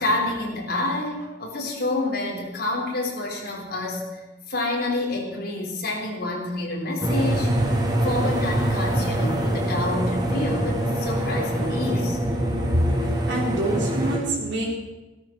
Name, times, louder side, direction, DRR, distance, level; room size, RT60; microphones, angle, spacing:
voice 1, 0.0-4.1 4.5-7.5 8.0-12.2, left 2 dB, 55° left, 0 dB, 3.8 m, -28 dB
sound 1, 7.0-14.2, right 1 dB, 20° right, 2.8 m, -24 dB
voice 2, 13.3-14.7, right 1 dB, 70° right, -3 dB, 3.6 m, -25 dB
14.5 x 13.5 x 6.0 m, 1.1 s
head